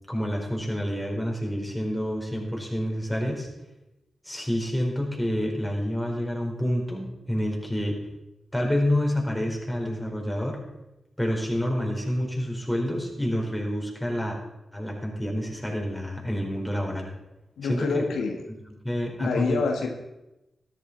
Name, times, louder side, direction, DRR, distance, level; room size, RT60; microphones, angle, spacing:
voice 1, 0.1-3.5 4.2-8.0 8.5-10.6 11.2-14.4 14.7-17.1 17.7-18.0 18.8-19.6, equal, 5° left, -2 dB, 4.5 m, -28 dB
voice 2, 17.6-18.4 19.2-19.9, left 4 dB, 90° left, 3 dB, 1.3 m, -27 dB
13.5 x 11.5 x 4.3 m, 0.95 s
cardioid pair, 45°, 0 cm